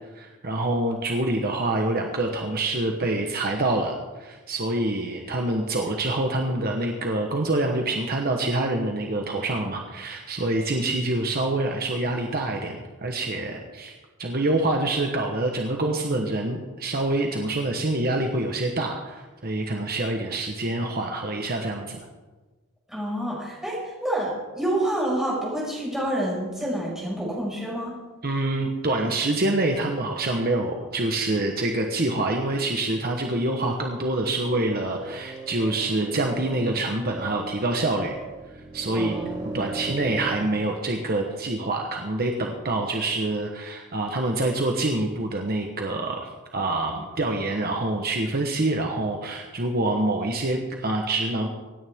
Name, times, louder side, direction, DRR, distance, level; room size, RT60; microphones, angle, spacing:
voice 1, 0.1-13.9 14.2-22.0 28.2-38.2 38.7-39.1 39.5-51.5, right 2 dB, 45° right, 2 dB, 1.1 m, -26 dB
voice 2, 22.9-28.0 38.9-39.8, right 1 dB, ahead, -6 dB, 5.5 m, -28 dB
sound 1, 34.3-40.5, right 3 dB, 20° right, 2.8 m, -37 dB
25.5 x 9.8 x 3.6 m, 1.2 s
head